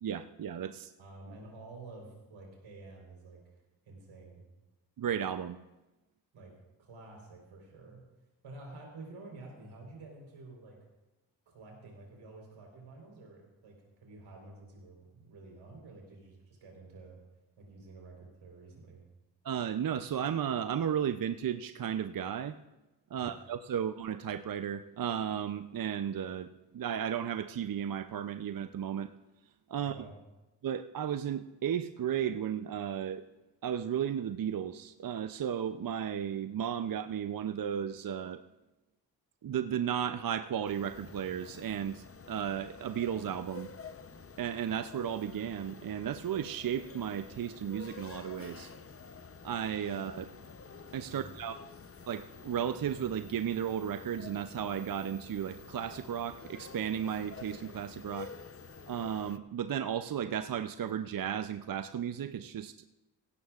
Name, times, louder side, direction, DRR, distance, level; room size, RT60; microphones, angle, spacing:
voice 1, 0.0-0.9 5.0-5.6 19.4-22.6 23.1-29.1 29.7-29.9 30.6-33.2 33.6-38.4 39.4-43.7 44.4-48.7 49.4-50.3 50.9-51.5 52.1-58.3 58.9-62.7, right 9 dB, 50° right, 10 dB, 0.6 m, -34 dB
voice 2, 1.0-3.4 3.8-4.4 6.3-6.5 6.8-8.0 8.4-10.8 11.5-17.2 17.6-19.0 23.1-23.4 29.8-30.1 51.1-51.3, right 2 dB, 80° right, 0 dB, 4.2 m, -50 dB
sound 1, 40.6-59.4, left 5 dB, 30° left, 0.8 m, -49 dB
17.0 x 15.5 x 2.5 m, 1.0 s
supercardioid pair, 40°, 46 cm